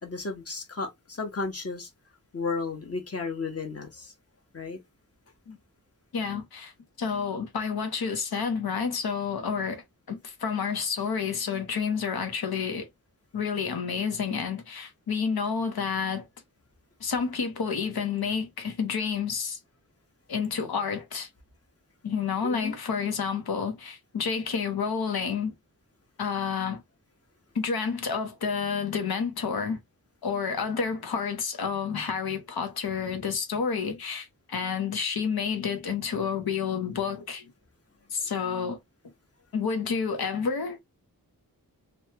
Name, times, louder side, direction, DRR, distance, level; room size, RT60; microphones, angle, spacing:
voice 1, 0.0-1.9 2.3-4.1 4.5-4.8 22.4-22.7, left 4 dB, 40° left, 1.0 m, -33 dB
voice 2, 6.1-6.7 7.0-12.9 13.3-16.3 17.0-19.6 20.3-21.3 22.0-25.5 26.2-26.8 27.5-29.8 30.2-37.5 38.1-38.8 39.5-40.8, left 6 dB, 90° left, 0.8 m, -29 dB
3.0 x 2.2 x 2.8 m
wide cardioid pair, 90°, 36 cm